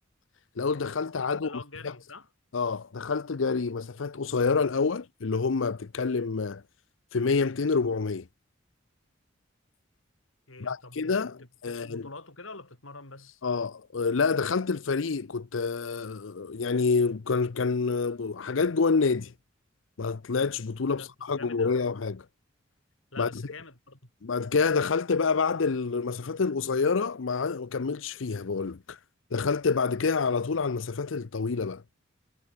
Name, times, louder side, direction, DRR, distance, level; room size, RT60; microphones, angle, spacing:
voice 1, 0.6-1.5 1.8-1.9 2.5-6.6 7.1-8.3 10.6-12.0 13.4-19.3 20.0-22.2 23.2-23.3 24.2-29.0 29.3-31.8, left 4 dB, 70° left, 0.7 m, -27 dB
voice 2, 1.3-2.3 10.5-11.3 11.7-13.4 20.9-21.8 23.1-24.1, left 3 dB, 85° left, 6.5 m, -45 dB
head